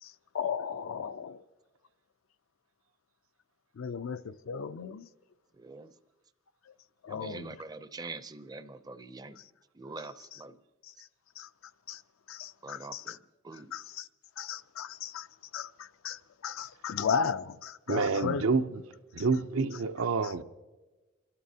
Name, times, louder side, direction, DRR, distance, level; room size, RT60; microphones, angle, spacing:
voice 1, 0.0-1.4 3.7-5.1 6.7-6.8 7.0-7.6 10.8-11.1 11.4-11.5 11.9-12.0 12.3-13.2 13.7-14.1 14.4-15.3 15.5-18.4 20.2-20.3, left 6 dB, 70° left, 0.4 m, -35 dB
voice 2, 5.5-5.9 7.1-9.4 9.7-10.6 12.6-13.2 13.4-13.7, right 3 dB, 20° right, 0.5 m, -44 dB
voice 3, 17.9-18.8 19.1-20.4, right 4 dB, 80° right, 0.6 m, -28 dB
29.0 x 12.5 x 2.8 m
head